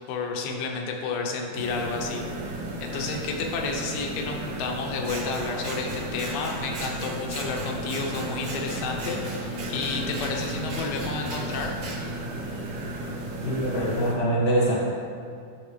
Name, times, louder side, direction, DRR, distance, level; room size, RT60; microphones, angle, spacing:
voice 1, 0.1-2.2 2.8-11.8, left 4 dB, 85° left, 2 dB, 2.8 m, -31 dB
sound 1, 1.5-14.1, right 1 dB, 65° right, 2.1 m, -34 dB
Scissors, 5.0-12.0, right 2 dB, 45° right, 2.3 m, -38 dB
voice 2, 13.4-14.7, right 1 dB, 30° left, -6 dB, 1.2 m, -24 dB
10.5 x 6.6 x 3.3 m, 2.3 s
omnidirectional pair, 4.3 m